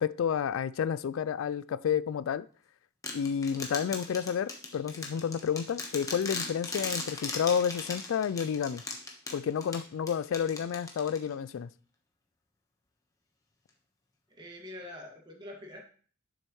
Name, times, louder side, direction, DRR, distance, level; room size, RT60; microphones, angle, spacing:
voice 1, 0.0-2.5 3.1-8.8 9.3-11.7, left 7 dB, 70° left, 0.3 m, -30 dB
sound 1, 3.0-11.5, left 3 dB, 15° left, 1.2 m, -38 dB
voice 2, 14.3-15.8, left 1 dB, 20° right, 1.9 m, -45 dB
11.0 x 6.4 x 3.1 m
head